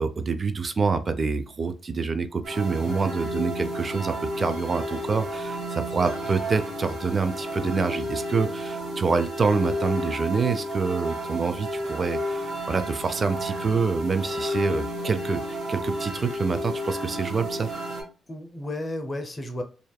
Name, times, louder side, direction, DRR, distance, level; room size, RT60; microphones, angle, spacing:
voice 1, 0.0-17.7, right 4 dB, 45° right, 0.4 m, -26 dB
sound 1, 2.4-18.0, equal, 70° right, 1.0 m, -32 dB
voice 2, 18.3-19.6, left 1 dB, 35° left, 0.6 m, -33 dB
2.6 x 2.3 x 2.2 m
hypercardioid pair, 50°, 0 cm